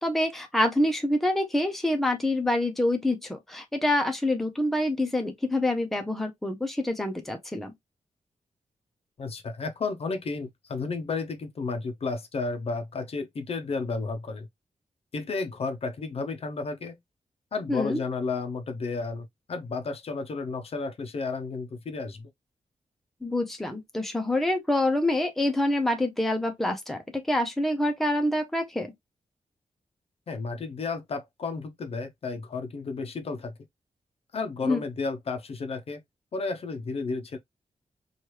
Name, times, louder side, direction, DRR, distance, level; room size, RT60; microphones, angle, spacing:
voice 1, 0.0-7.7 17.7-18.0 23.2-27.0 27.3-28.9 34.6-34.8, left 1 dB, ahead, 0.5 m, -26 dB
voice 2, 9.2-14.5 15.1-17.0 17.5-22.3 30.3-33.5 34.3-36.0 36.3-37.4, left 4 dB, 50° left, 0.5 m, -32 dB
3.0 x 2.3 x 3.1 m
wide cardioid pair, 165°, 13 cm